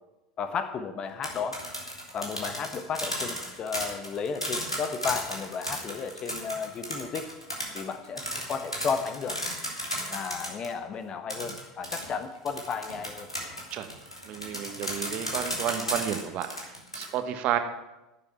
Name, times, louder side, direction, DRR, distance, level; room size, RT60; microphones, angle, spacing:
voice 1, 0.4-1.6 2.1-7.3 7.7-9.4 10.1-13.3, left 6 dB, 35° left, 9 dB, 1.3 m, -33 dB
sound 1, 1.1-10.7 11.3-17.0, equal, 90° left, 2.6 m, -34 dB
voice 2, 14.3-17.6, right 10 dB, 45° right, 8 dB, 1.3 m, -31 dB
11.5 x 7.5 x 9.2 m, 0.98 s
figure-of-eight pair, 75°, 3 cm